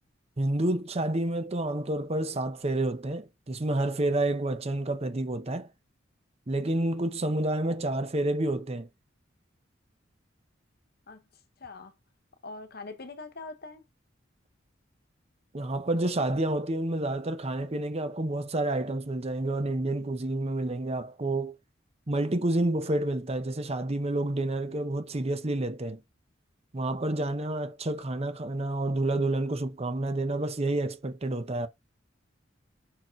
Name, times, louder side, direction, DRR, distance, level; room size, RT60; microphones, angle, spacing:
voice 1, 0.4-5.7 6.5-8.9 15.5-21.6 22.1-26.0 26.7-31.7, right 1 dB, 35° right, 0.8 m, -29 dB
voice 2, 11.1-11.9 12.4-13.8, left 3 dB, 55° left, 1.0 m, -43 dB
5.9 x 4.9 x 4.5 m
head